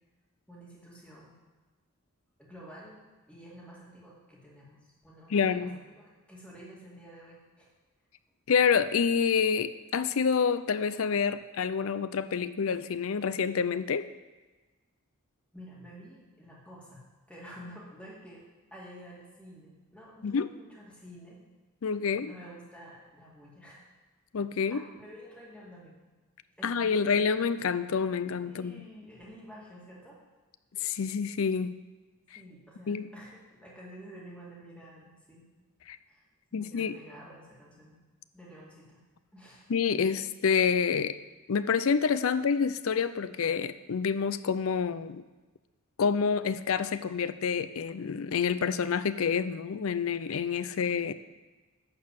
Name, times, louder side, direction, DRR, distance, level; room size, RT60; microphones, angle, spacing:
voice 1, 0.5-1.4 2.4-7.7 15.5-18.4 18.7-21.4 22.0-23.8 24.7-26.0 26.6-27.2 28.5-30.2 32.4-35.5 36.1-36.2 36.5-38.0 38.3-39.0 39.3-39.7, equal, 5° left, -6 dB, 2.3 m, -50 dB
voice 2, 5.3-5.8 8.5-14.1 20.2-20.5 21.8-22.3 24.3-24.8 26.6-28.9 30.8-31.8 32.9-33.1 35.9-36.0 36.5-37.0 39.7-41.2 41.5-45.2 46.0-51.1, left 6 dB, 65° left, 14 dB, 0.5 m, -28 dB
11.5 x 4.7 x 7.6 m, 1.3 s
head